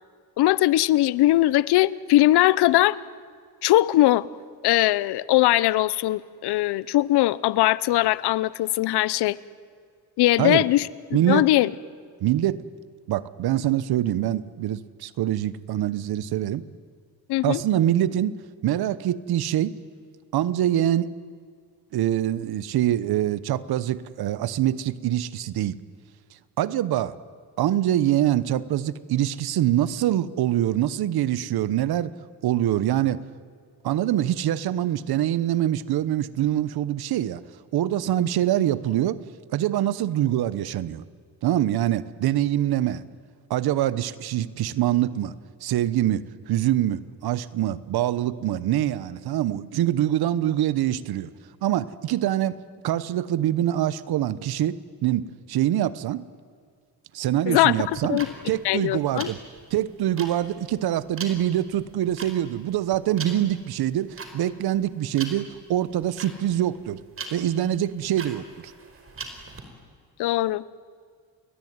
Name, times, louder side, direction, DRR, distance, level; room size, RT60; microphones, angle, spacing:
voice 1, 0.4-3.0 3.6-4.3 4.6-9.4 10.2-10.9 11.3-11.7 17.3-17.6 57.5-57.7 58.1-58.3 58.6-59.3 70.2-70.6, left 16 dB, 80° left, 20 dB, 0.9 m, -20 dB
voice 2, 11.1-11.5 12.2-12.6 13.1-16.6 17.4-19.8 20.3-21.1 21.9-25.8 26.6-27.2 27.6-32.1 32.4-33.2 33.8-37.4 37.7-39.2 39.5-41.0 41.4-43.0 43.5-45.3 45.6-51.3 51.6-52.6 52.8-56.3 57.1-58.2 58.5-59.4 59.7-67.0 67.3-68.5, right 12 dB, 70° right, 17 dB, 1.2 m, -24 dB
sound 1, 57.9-69.6, right 4 dB, 35° right, 4.8 m, -40 dB
29.5 x 21.0 x 9.6 m, 2.1 s
cardioid pair, 105°, 39 cm